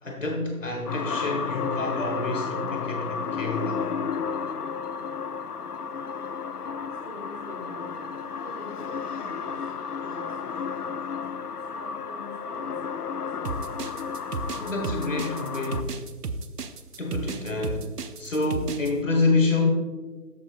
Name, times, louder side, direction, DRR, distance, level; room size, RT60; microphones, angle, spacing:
voice 1, 0.0-3.9 14.6-16.0 17.0-17.9 18.2-19.7, left 3 dB, 55° left, 2 dB, 1.4 m, -27 dB
sound 1, 0.9-15.8, left 6 dB, 75° left, 0.7 m, -32 dB
voice 2, 6.6-13.6, left 1 dB, 5° left, -15 dB, 2.1 m, -46 dB
sound 2, 13.4-18.9, right 4 dB, 80° right, 0.8 m, -33 dB
13.5 x 6.1 x 2.4 m, 1.3 s
figure-of-eight pair, 170°, 47 cm